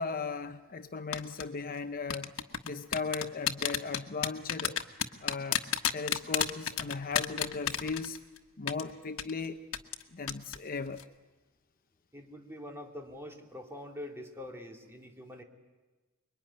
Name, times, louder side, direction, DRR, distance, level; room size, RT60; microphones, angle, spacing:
voice 1, 0.0-2.3 2.6-4.8 5.2-5.6 5.9-8.2 8.6-9.6 10.1-11.0, left 4 dB, 45° left, 0.8 m, -37 dB
sound 1, 1.1-1.4 2.1-8.4 8.7-8.8 9.2-9.3 9.7-10.0 10.3-10.6 10.9-11.0, left 9 dB, 90° left, 1.3 m, -30 dB
voice 2, 12.1-15.4, left 1 dB, 10° right, 2.9 m, -44 dB
26.5 x 22.5 x 9.8 m
head